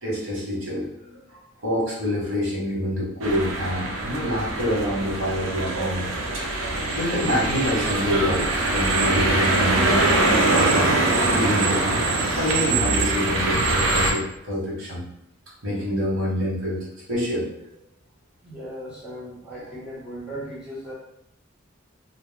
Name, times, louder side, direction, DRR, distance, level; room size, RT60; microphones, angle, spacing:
voice 1, 0.0-6.1 6.9-10.9 11.3-11.8 12.2-15.0 15.6-17.5, equal, 90° right, -5 dB, 1.2 m, -27 dB
sound 1, 3.2-14.1, right 2 dB, 75° right, 0.5 m, -23 dB
voice 2, 18.4-20.9, equal, 5° right, -8 dB, 0.8 m, -37 dB
2.3 x 2.1 x 3.3 m, 0.77 s
head